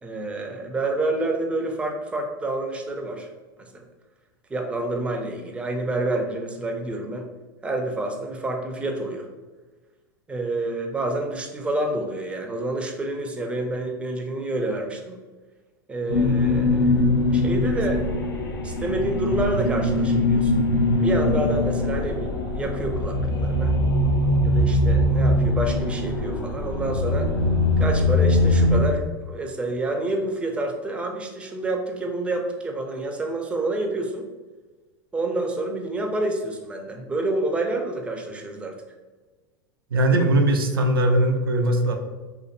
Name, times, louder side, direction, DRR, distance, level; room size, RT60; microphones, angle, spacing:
voice 1, 0.0-3.3 3.6-3.8 4.5-7.3 7.6-9.3 10.3-15.2 15.9-18.0 18.6-20.5 21.0-23.7 24.4-27.3 27.8-34.3 35.1-38.8, right 2 dB, 10° right, 2 dB, 0.4 m, -28 dB
sound 1, 16.1-28.8, left 1 dB, 85° left, 0.5 m, -22 dB
voice 2, 39.9-42.0, right 1 dB, 90° right, 4 dB, 0.4 m, -20 dB
2.7 x 2.5 x 2.4 m, 1.3 s
hypercardioid pair, 100°, 12 cm